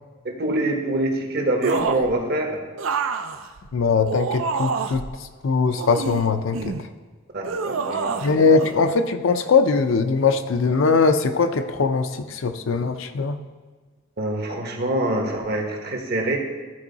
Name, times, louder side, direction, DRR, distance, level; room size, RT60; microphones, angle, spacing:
voice 1, 0.2-2.6 7.3-8.4 14.2-16.4, right 1 dB, 55° right, 1 dB, 1.3 m, -25 dB
sound 1, 1.6-2.1 2.8-5.1 5.8-6.9 7.4-8.3 8.6-8.7, right 5 dB, 75° right, 0.5 m, -27 dB
voice 2, 3.7-6.7 8.2-13.4, left 4 dB, 70° left, 7 dB, 0.5 m, -21 dB
13.5 x 4.6 x 4.0 m, 1.4 s
head